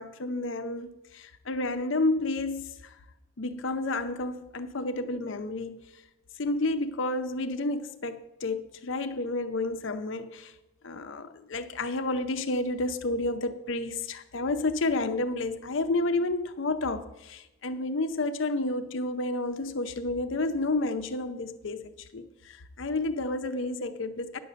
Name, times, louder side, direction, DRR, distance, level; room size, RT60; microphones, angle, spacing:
voice 1, 0.0-3.0 3.4-5.8 6.4-10.5 10.8-24.4, left 2 dB, 60° left, 0.6 m, -30 dB
10.0 x 6.6 x 6.6 m
head